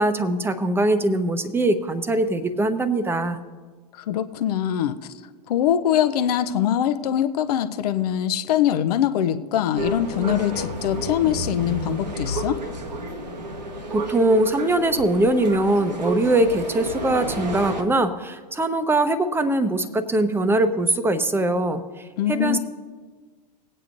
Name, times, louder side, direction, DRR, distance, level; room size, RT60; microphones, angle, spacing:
voice 1, 0.0-3.4 13.9-22.6, right 1 dB, 10° right, 10 dB, 0.8 m, -22 dB
voice 2, 3.9-5.0 5.5-12.6 22.2-22.6, left 10 dB, 65° left, 10 dB, 0.7 m, -23 dB
sound 1, 9.8-17.8, right 1 dB, 90° right, 1.3 m, -30 dB
20.0 x 8.9 x 2.6 m, 1.5 s
hypercardioid pair, 95°, 21 cm